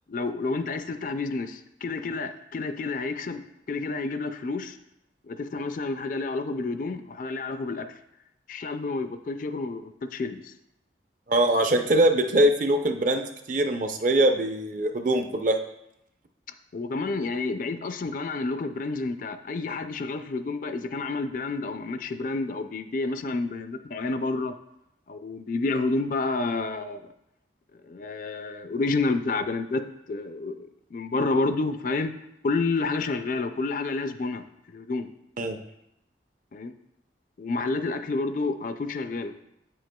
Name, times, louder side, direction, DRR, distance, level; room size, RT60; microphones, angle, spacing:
voice 1, 0.1-3.4 3.7-4.8 5.2-7.9 8.5-10.5 16.7-24.5 25.1-27.1 27.8-32.1 32.4-35.1 36.5-36.7 37.4-39.3, left 3 dB, 45° left, 9 dB, 0.4 m, -29 dB
voice 2, 11.3-15.6 35.4-35.6, right 1 dB, 45° right, 6 dB, 0.5 m, -22 dB
8.4 x 7.6 x 2.2 m, 0.82 s
head